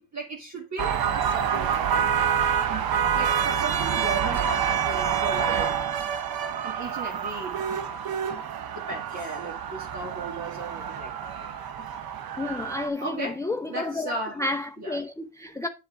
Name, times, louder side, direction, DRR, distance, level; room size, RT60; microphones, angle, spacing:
voice 1, 0.0-2.1 2.7-2.9 3.1-5.7 6.0-6.1 6.5-7.9 8.3-8.4 8.7-11.9 13.0-13.4 13.7-14.4 14.8-15.0, right 3 dB, 45° right, 1.8 m, -36 dB
sound 1, 0.8-12.9, right 8 dB, 70° right, 0.9 m, -27 dB
voice 2, 12.4-15.7, left 2 dB, 10° left, 0.5 m, -31 dB
7.9 x 6.7 x 3.6 m
cardioid pair, 85°, 38 cm